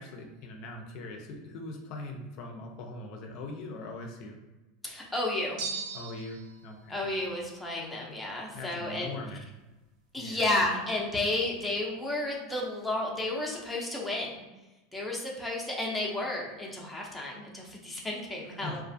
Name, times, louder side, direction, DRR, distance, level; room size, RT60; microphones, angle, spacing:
voice 1, 0.0-4.4 5.9-7.1 8.5-9.5 10.2-10.5 18.5-18.8, left 2 dB, 55° left, 2 dB, 0.4 m, -41 dB
voice 2, 4.8-5.7 6.9-9.1 10.1-14.4 14.9-18.8, left 2 dB, 5° left, -3 dB, 0.5 m, -32 dB
sound 1, 5.6-6.5, right 5 dB, 55° right, 0.5 m, -37 dB
2.4 x 2.3 x 2.5 m, 1.1 s
supercardioid pair, 135°, 0 cm